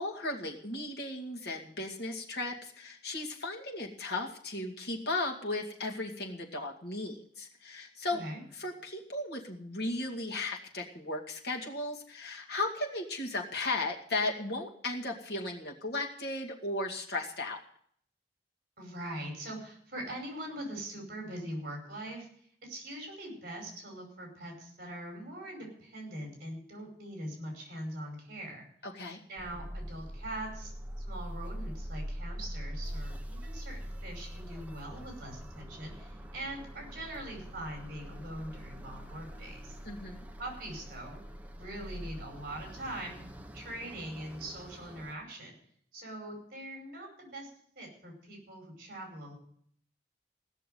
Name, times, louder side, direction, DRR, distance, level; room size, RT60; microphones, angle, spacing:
voice 1, 0.0-8.2 8.5-17.6 28.8-29.2 39.9-40.2, left 2 dB, 60° left, 0 dB, 2.3 m, -36 dB
voice 2, 8.1-8.4 18.8-28.6 29.3-30.7 31.1-39.8 40.4-41.2 41.5-43.2 43.5-45.6 45.9-49.3, right 1 dB, 55° right, 2 dB, 5.4 m, -42 dB
sound 1, 29.4-45.1, equal, 10° right, 0.9 m, -43 dB
16.5 x 6.6 x 9.3 m, 0.64 s
head